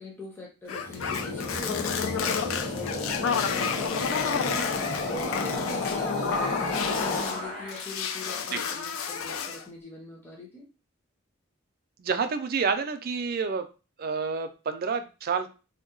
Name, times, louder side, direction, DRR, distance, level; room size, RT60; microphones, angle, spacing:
voice 1, 0.0-3.1 3.6-4.6 5.1-10.7, left 2 dB, 10° left, -3 dB, 0.6 m, -43 dB
sound 1, 0.7-7.4 7.7-9.6, left 6 dB, 70° left, 0.4 m, -31 dB
sound 2, 0.7-8.1, left 2 dB, 30° left, 1.0 m, -32 dB
voice 2, 12.0-13.7 14.0-15.5, right 5 dB, 45° right, 8 dB, 0.4 m, -29 dB
2.8 x 2.2 x 3.8 m, 0.32 s
head